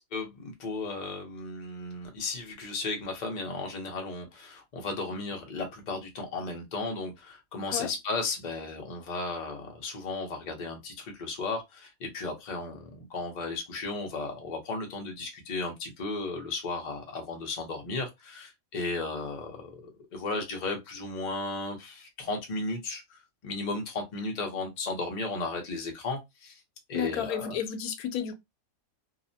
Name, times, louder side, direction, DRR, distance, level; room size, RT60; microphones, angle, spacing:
voice 1, 0.1-26.6 26.9-27.6, left 3 dB, 40° left, 0.7 m, -35 dB
voice 2, 26.9-28.4, left 8 dB, 85° left, 1.1 m, -32 dB
2.8 x 2.0 x 2.7 m
omnidirectional pair, 1.5 m